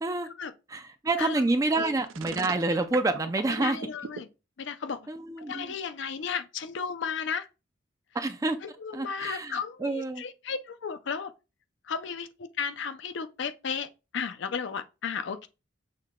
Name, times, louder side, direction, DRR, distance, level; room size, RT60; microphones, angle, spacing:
voice 1, 0.7-3.8 5.1-5.7 8.1-8.6 8.9-10.2, right 2 dB, 15° right, 0.3 m, -28 dB
sound 1, 2.1-4.2, right 6 dB, 85° right, 0.4 m, -38 dB
voice 2, 3.6-4.3 4.6-5.1 5.4-7.5 8.6-11.3 11.8-15.5, left 6 dB, 65° left, 0.4 m, -34 dB
6.4 x 2.2 x 3.6 m
head